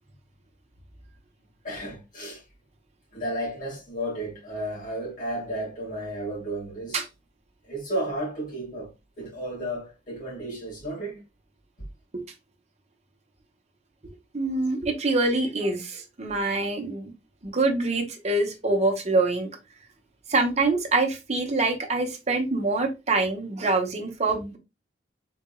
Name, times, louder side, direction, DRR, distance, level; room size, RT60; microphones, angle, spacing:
voice 1, 1.6-2.4 3.1-7.0 7.7-8.9 9.2-11.2, right 1 dB, 45° left, 2.0 m, -33 dB
voice 2, 14.3-17.1 17.4-19.5 20.3-24.6, right 3 dB, 40° right, 0.9 m, -25 dB
3.8 x 3.4 x 2.3 m
head